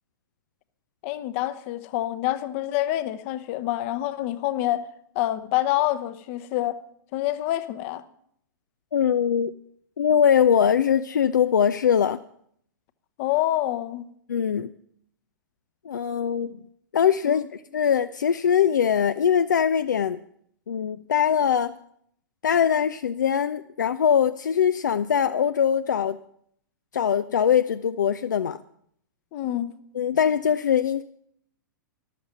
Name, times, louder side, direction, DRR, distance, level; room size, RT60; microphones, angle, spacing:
voice 1, 1.0-4.8 5.1-6.8 7.1-8.0 13.2-14.1 17.3-17.5 29.3-29.7, left 14 dB, 40° left, 0.9 m, -27 dB
voice 2, 8.9-9.5 10.0-12.2 14.3-14.7 15.9-16.6 16.9-20.2 20.7-21.8 22.4-26.2 26.9-28.6 29.9-31.0, left 8 dB, 65° left, 0.5 m, -22 dB
13.5 x 12.5 x 5.7 m
figure-of-eight pair, 105°, 11 cm